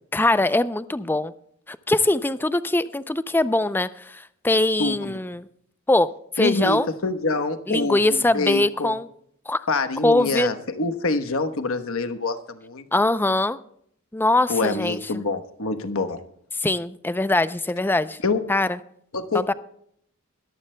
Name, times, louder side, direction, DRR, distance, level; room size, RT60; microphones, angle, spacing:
voice 1, 0.1-1.3 1.7-5.4 5.9-6.9 7.7-9.1 9.5-9.6 10.0-10.5 12.9-13.6 14.1-15.0 16.6-18.2 18.5-18.7 19.5-19.6, left 2 dB, 10° left, 14 dB, 0.4 m, -22 dB
voice 2, 4.8-5.2 6.4-9.0 9.7-12.9 14.5-16.2 18.2-18.4 19.1-19.5, left 3 dB, 70° left, 9 dB, 1.1 m, -26 dB
22.0 x 14.0 x 2.2 m, 0.68 s
head